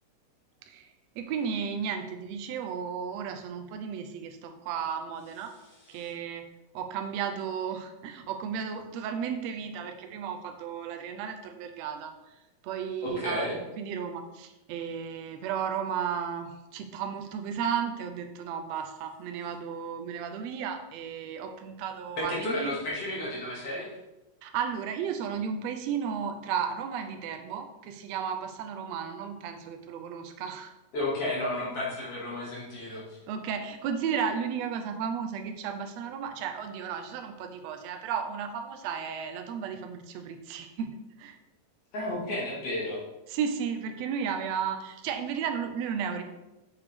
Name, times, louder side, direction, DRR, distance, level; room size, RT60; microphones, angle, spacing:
voice 1, 1.2-5.5 5.9-6.5 6.7-12.3 12.6-22.8 24.4-30.7 33.3-41.4 43.3-46.2, right 7 dB, 80° right, 5 dB, 1.6 m, -34 dB
voice 2, 13.0-13.6 22.2-23.9 30.9-33.0 41.9-43.0, left 1 dB, 50° left, -5 dB, 3.0 m, -32 dB
6.8 x 6.6 x 3.6 m, 0.96 s
omnidirectional pair, 3.6 m